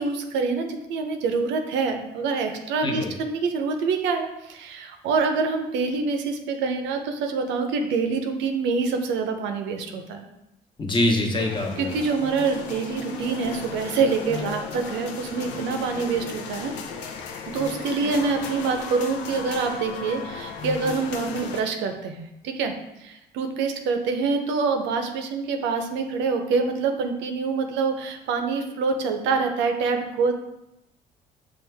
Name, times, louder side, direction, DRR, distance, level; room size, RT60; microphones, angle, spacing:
voice 1, 0.0-10.3 11.8-16.7 17.5-22.7 23.0-30.3, right 4 dB, 80° right, 6 dB, 0.6 m, -26 dB
voice 2, 10.8-12.0, left 1 dB, 25° left, 1 dB, 1.0 m, -24 dB
sound 1, 11.4-21.6, left 6 dB, 85° left, 0.6 m, -35 dB
6.4 x 2.5 x 3.4 m, 0.90 s
cardioid pair, 95°, 18 cm